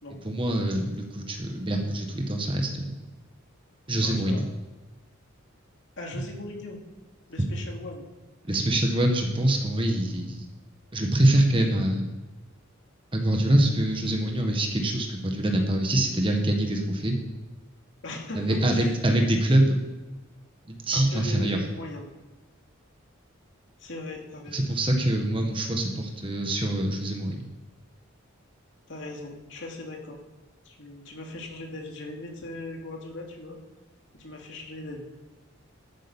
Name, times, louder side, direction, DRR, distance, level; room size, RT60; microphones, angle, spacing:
voice 1, 0.2-2.8 3.9-4.4 8.5-10.4 10.9-12.1 13.1-17.1 18.3-19.8 20.7-21.6 24.5-27.5, right 1 dB, 25° right, 3 dB, 1.6 m, -24 dB
voice 2, 4.0-4.4 6.0-6.8 7.3-8.0 18.0-19.0 20.9-22.1 23.8-24.6 28.9-30.2 30.7-33.6 34.2-35.0, left 2 dB, 60° left, 1 dB, 2.5 m, -39 dB
12.5 x 9.1 x 5.5 m, 1.2 s
head